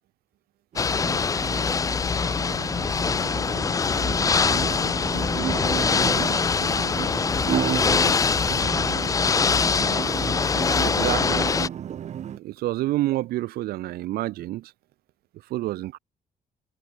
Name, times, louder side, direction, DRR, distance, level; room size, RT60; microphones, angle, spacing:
sound 1, 0.7-12.4, right 10 dB, 45° right, 1.9 m, -33 dB
Ocean / Boat Water vehicle, 0.8-11.7, left 5 dB, 20° left, 0.7 m, -23 dB
voice 1, 0.9-1.9, right 2 dB, 10° right, 6.1 m, -50 dB
voice 2, 10.8-11.5 12.4-14.6 15.5-16.0, right 16 dB, 90° right, 0.6 m, -28 dB
cardioid pair, 175°, 15 cm